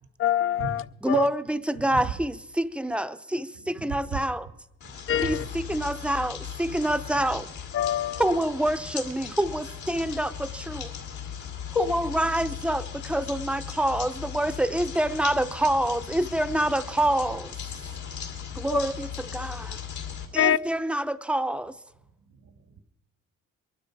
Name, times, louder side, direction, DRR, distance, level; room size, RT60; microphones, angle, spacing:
voice 1, 0.2-0.8 1.1-1.3 5.1-5.4 7.7-8.3 11.7-11.9 18.7-18.8 20.4-20.6, left 10 dB, 45° left, 0.5 m, -24 dB
voice 2, 1.0-4.5 5.2-7.5 8.2-10.9 11.7-17.6 18.6-19.8 20.3-21.7, right 1 dB, 5° right, 0.6 m, -27 dB
voice 3, 1.8-2.1 3.6-4.3 4.8-5.9 6.8-6.9 17.7-18.7 20.0-20.4 22.3-22.8, right 5 dB, 90° right, 1.9 m, -39 dB
sound 1, 4.8-20.3, left 8 dB, 75° left, 2.6 m, -38 dB
22.5 x 12.0 x 4.7 m
cardioid pair, 90°, 30 cm